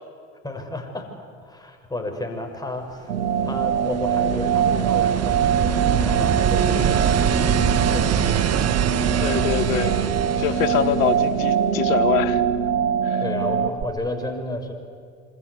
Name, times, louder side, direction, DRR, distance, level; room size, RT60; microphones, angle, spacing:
voice 1, 0.4-1.1 1.4-3.1 3.4-8.5 13.2-14.7, left 1 dB, 10° left, 3 dB, 6.3 m, -32 dB
sound 1, 3.1-13.7, right 7 dB, 85° right, 2.3 m, -23 dB
sound 2, 3.2-11.7 13.8-13.9, right 9 dB, 35° right, 1.5 m, -24 dB
voice 2, 9.2-10.1 10.4-12.4 13.0-13.2, left 11 dB, 70° left, 11 dB, 1.8 m, -24 dB
27.5 x 26.0 x 8.3 m, 2.3 s
hypercardioid pair, 70°, 43 cm